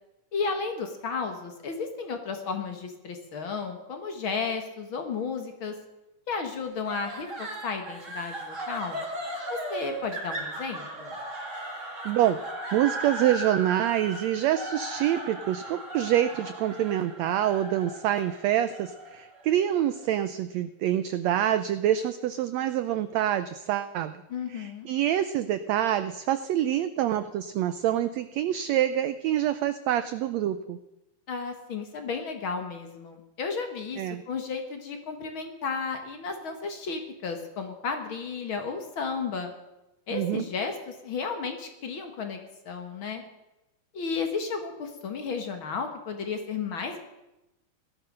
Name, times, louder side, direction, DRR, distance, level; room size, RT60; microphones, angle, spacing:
voice 1, 0.3-5.8 6.3-9.0 9.5-11.1 24.3-24.9 31.3-39.5 40.1-42.4 42.7-43.2 43.9-47.0, left 5 dB, 45° left, 5 dB, 1.9 m, -33 dB
sound 1, 6.8-20.0, right 1 dB, 25° right, 2.5 m, -37 dB
voice 2, 12.0-12.4 12.7-24.1 24.5-30.8 34.0-34.2 40.1-40.4, right 11 dB, 85° right, 11 dB, 1.5 m, -26 dB
17.0 x 12.5 x 6.6 m, 0.96 s
omnidirectional pair, 3.8 m